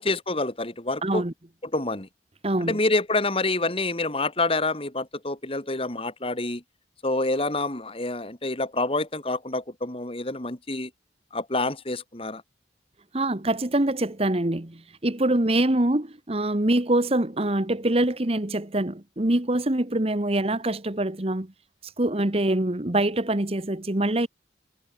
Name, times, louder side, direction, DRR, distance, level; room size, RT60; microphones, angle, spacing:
voice 1, 0.0-1.2 1.7-2.1 2.6-6.6 7.0-10.9 11.3-12.4, left 2 dB, 30° left, 2.6 m, -27 dB
voice 2, 1.0-1.3 2.4-2.8 13.1-21.5 22.0-24.3, right 1 dB, 35° right, 1.4 m, -24 dB
head